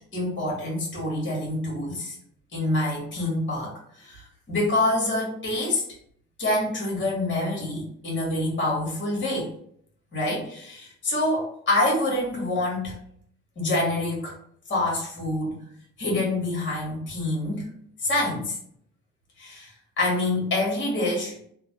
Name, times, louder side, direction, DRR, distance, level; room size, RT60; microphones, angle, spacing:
voice 1, 0.1-2.2 2.5-5.8 6.4-9.5 10.1-12.9 13.6-14.3 14.7-15.5 16.0-17.7 18.0-18.6 19.4-21.4, left 2 dB, 40° left, -3 dB, 1.4 m, -26 dB
2.9 x 2.2 x 3.0 m, 0.65 s
cardioid pair, 90°, 30 cm